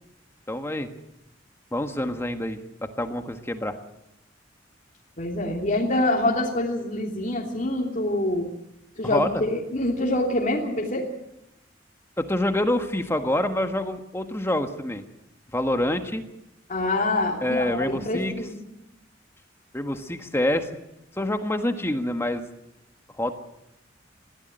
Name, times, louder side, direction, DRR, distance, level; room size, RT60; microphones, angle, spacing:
voice 1, 0.5-0.9 1.7-3.8 9.0-9.4 12.2-15.0 15.5-16.3 17.4-18.3 19.7-20.7 21.2-22.4 23.2-23.3, left 1 dB, 15° left, 6 dB, 1.5 m, -26 dB
voice 2, 5.2-8.5 9.0-11.1 16.7-18.6, left 1 dB, 45° left, -1 dB, 3.0 m, -25 dB
21.5 x 15.5 x 9.1 m, 0.87 s
head